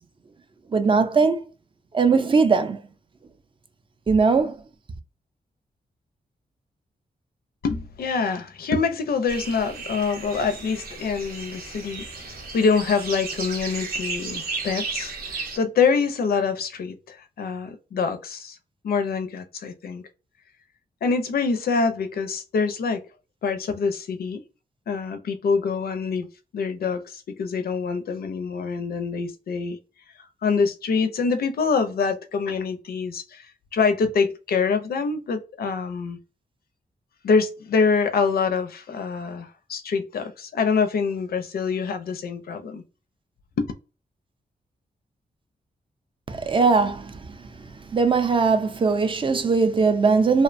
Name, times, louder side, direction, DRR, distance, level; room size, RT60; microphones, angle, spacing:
voice 1, 0.7-1.4 1.9-2.8 4.1-4.6 46.3-47.2 47.9-50.4, right 4 dB, 30° right, 0.4 m, -20 dB
voice 2, 7.6-18.6 18.8-20.0 21.0-23.0 23.4-24.4 24.9-26.3 26.5-29.8 30.4-36.2 37.2-42.8 43.6-43.7, left 5 dB, 75° left, 0.4 m, -25 dB
sound 1, 9.3-15.6, right 4 dB, 70° right, 0.6 m, -34 dB
2.6 x 2.1 x 2.5 m
wide cardioid pair, 110°, 16 cm